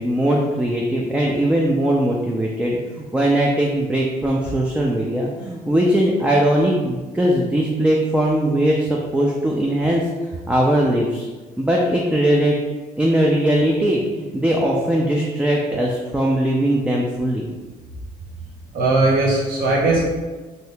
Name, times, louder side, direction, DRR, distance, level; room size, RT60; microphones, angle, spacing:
voice 1, 0.0-10.0 10.5-11.3 11.6-12.6 13.0-17.5, right 1 dB, 5° right, -2 dB, 0.3 m, -20 dB
voice 2, 18.7-20.0, right 2 dB, 60° right, -5 dB, 0.9 m, -18 dB
2.7 x 2.7 x 3.3 m, 1.3 s
cardioid pair, 110°, 17 cm